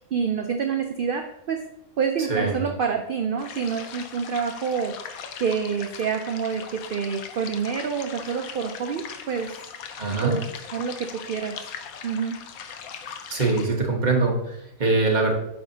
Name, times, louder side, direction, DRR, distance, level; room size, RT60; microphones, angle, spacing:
voice 1, 0.1-1.6 2.0-5.0 5.4-9.5 10.2-10.4 10.7-11.6 12.0-12.4, right 6 dB, 65° right, 5 dB, 0.5 m, -27 dB
voice 2, 2.3-2.6 10.0-10.4 13.3-15.3, right 3 dB, 35° right, 0 dB, 1.4 m, -23 dB
sound 1, 3.4-13.7, left 7 dB, 80° left, 1.2 m, -40 dB
8.6 x 5.6 x 2.8 m, 0.81 s
omnidirectional pair, 1.5 m